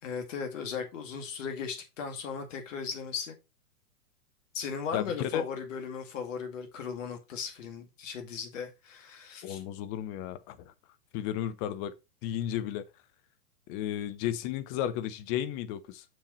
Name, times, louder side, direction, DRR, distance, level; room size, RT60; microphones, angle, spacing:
voice 1, 0.0-3.4 4.5-9.6, left 6 dB, 55° left, 2.2 m, -37 dB
voice 2, 4.9-5.4 9.4-10.7 11.1-11.9 12.2-12.9 13.7-16.0, left 11 dB, 25° left, 0.7 m, -33 dB
6.5 x 6.2 x 4.1 m
figure-of-eight pair, 110°, 46 cm